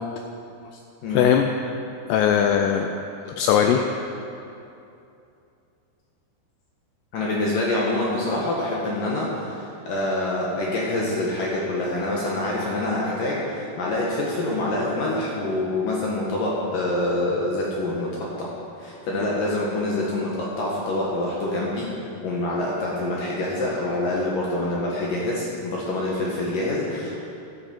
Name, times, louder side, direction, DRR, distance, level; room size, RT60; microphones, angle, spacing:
voice 1, 1.1-1.7 2.1-2.9 3.3-3.8, left 8 dB, 85° left, 4 dB, 2.4 m, -20 dB
voice 2, 7.1-18.5 18.8-21.9 22.2-27.2, left 2 dB, 65° left, -4 dB, 2.3 m, -26 dB
13.5 x 10.5 x 4.4 m, 2.7 s
omnidirectional pair, 5.3 m